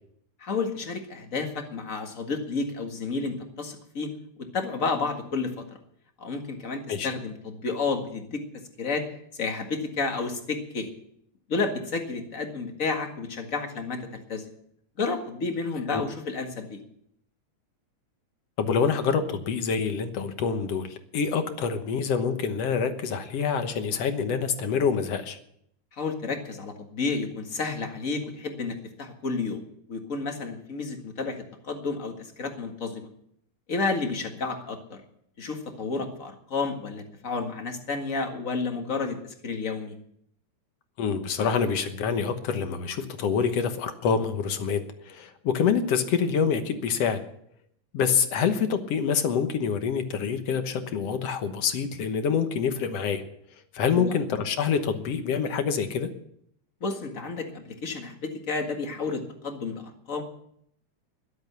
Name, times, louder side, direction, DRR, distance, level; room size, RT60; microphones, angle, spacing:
voice 1, 0.4-4.1 4.4-5.5 6.2-8.4 8.8-9.0 9.3-10.9 11.5-14.5 15.0-16.8 25.9-29.6 29.9-31.4 31.6-33.1 33.7-35.0 35.4-39.2 39.4-39.9 53.9-54.2 56.8-60.2, left 4 dB, 35° left, 4 dB, 1.7 m, -31 dB
voice 2, 18.6-25.4 41.0-47.2 47.9-53.2 53.7-56.1, left 6 dB, 60° left, 8 dB, 2.0 m, -26 dB
21.5 x 8.1 x 6.8 m, 0.70 s
omnidirectional pair, 3.5 m